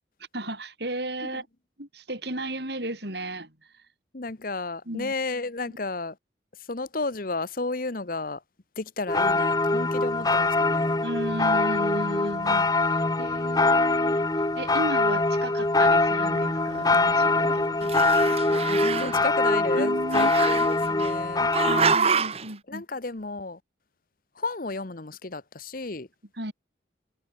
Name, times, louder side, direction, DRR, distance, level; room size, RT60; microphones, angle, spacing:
voice 1, 0.3-1.5 1.8-3.8 4.9-5.1 5.7-5.8 11.0-18.2 19.7-20.3 21.4-22.8 26.3-26.5, right 1 dB, 60° right, 7.4 m, -35 dB
voice 2, 4.1-6.1 6.7-8.4 8.8-11.0 18.7-21.5 22.7-23.6 24.4-26.1, left 3 dB, 45° left, 1.0 m, -33 dB
sound 1, 9.1-22.0, left 2 dB, 20° left, 1.1 m, -23 dB
Growling, 16.3-17.5 17.8-19.2 20.1-21.1 21.5-22.5, right 5 dB, 30° right, 1.1 m, -27 dB
head